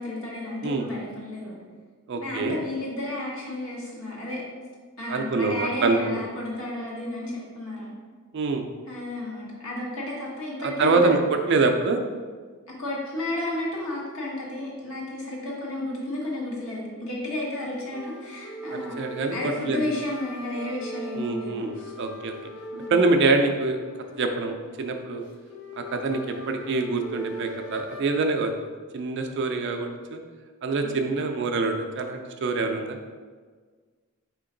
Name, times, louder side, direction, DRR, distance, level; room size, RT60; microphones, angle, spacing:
voice 1, 0.0-1.5 2.1-4.4 5.0-7.9 8.9-11.0 12.8-19.0 19.3-21.9 22.7-23.0 30.8-30.9, left 1 dB, 65° left, -4 dB, 1.3 m, -32 dB
voice 2, 2.1-2.6 5.1-6.2 8.3-8.7 10.6-11.2 11.5-12.0 18.7-19.3 19.7-19.8 21.2-22.3 22.9-23.8 24.2-25.2 25.8-28.5 28.9-30.2 30.6-33.0, right 3 dB, 55° right, 4 dB, 0.4 m, -25 dB
sound 1, 17.9-28.0, equal, 80° left, 0.6 m, -41 dB
4.4 x 2.8 x 3.8 m, 1.5 s
head